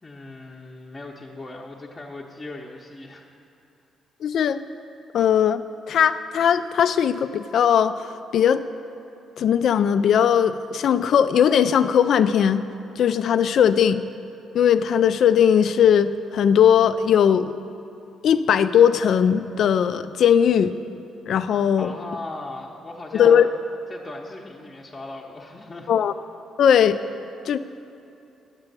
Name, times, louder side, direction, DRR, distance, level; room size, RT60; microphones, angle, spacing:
voice 1, 0.0-3.3 21.7-23.5 23.9-25.9, left 2 dB, 25° left, -2 dB, 0.8 m, -38 dB
voice 2, 4.2-4.6 5.1-8.6 9.4-12.6 13.0-14.0 14.5-17.5 18.2-20.8 21.3-21.9 23.1-23.5 25.9-26.1 26.6-27.0 27.5-27.6, left 8 dB, 65° left, 12 dB, 0.3 m, -19 dB
8.2 x 8.0 x 6.7 m, 2.7 s
cardioid pair, 90°, 0 cm